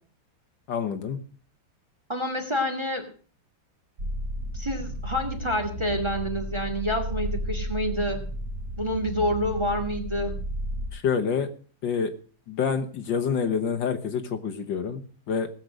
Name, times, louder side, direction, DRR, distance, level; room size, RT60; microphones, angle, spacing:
voice 1, 0.7-1.2 10.9-11.5 11.8-12.1 12.5-15.0 15.3-15.5, left 6 dB, 65° left, 6 dB, 1.8 m, -27 dB
voice 2, 2.1-3.1 4.5-8.2 8.8-10.4, equal, 15° right, 3 dB, 2.1 m, -28 dB
sound 1, 4.0-10.9, right 1 dB, 45° right, 2.9 m, -33 dB
18.0 x 7.6 x 6.5 m, 0.42 s
omnidirectional pair, 2.2 m